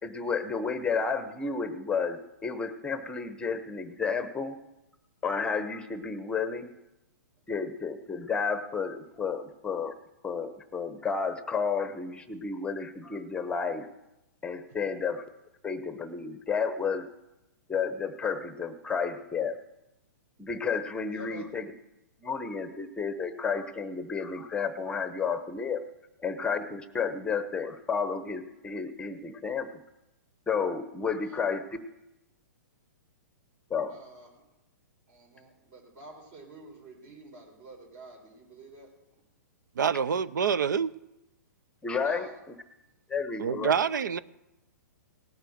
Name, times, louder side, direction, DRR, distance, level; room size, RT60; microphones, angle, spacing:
voice 1, 0.0-4.6 5.2-6.7 7.5-9.9 10.2-13.9 14.4-15.2 15.6-17.1 17.7-19.6 20.4-21.7 22.2-25.8 26.2-29.8 30.5-31.8 33.7-34.0 41.8-42.3 43.1-43.8, left 5 dB, 10° left, 0.8 m, -31 dB
voice 2, 21.1-21.5 31.2-31.4 33.9-34.4 35.1-38.9 42.0-42.4, right 2 dB, 45° right, 4.3 m, -48 dB
voice 3, 39.8-40.9 43.4-44.2, right 7 dB, 80° right, 0.6 m, -26 dB
18.0 x 8.2 x 6.4 m
hypercardioid pair, 135°, 10 cm